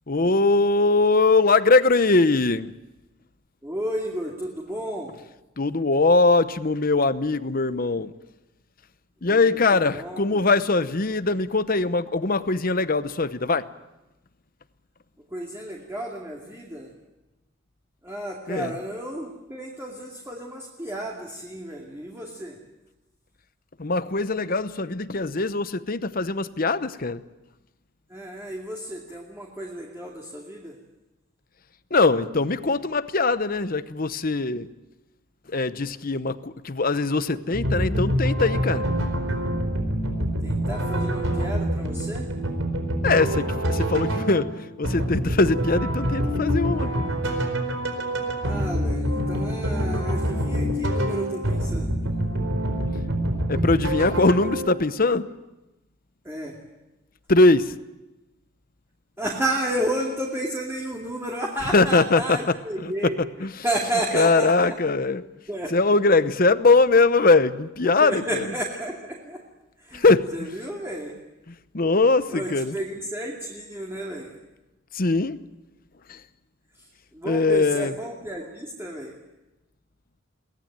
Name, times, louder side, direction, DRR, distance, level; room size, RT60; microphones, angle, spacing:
voice 1, 0.1-2.7 5.6-8.1 9.2-13.6 18.5-18.7 23.8-27.2 31.9-34.7 35.5-38.9 43.0-47.1 53.5-55.3 57.3-57.7 61.7-63.1 63.4-63.5 64.1-65.2 65.7-68.4 69.9-70.5 71.7-72.7 74.9-75.4 76.1-76.2 77.2-77.9, left 3 dB, 45° left, 13 dB, 0.9 m, -21 dB
voice 2, 3.6-5.1 9.2-9.6 9.9-10.4 15.3-16.9 18.0-22.6 28.1-30.8 40.4-42.3 48.4-51.9 56.2-56.6 59.2-64.8 65.5-65.7 68.0-69.4 69.8-70.1 70.3-71.2 72.3-74.3 77.1-79.1, right 1 dB, 15° right, -1 dB, 2.5 m, -32 dB
sound 1, 37.5-54.9, equal, 85° right, 4.5 m, -26 dB
23.0 x 18.5 x 8.9 m, 1.0 s
head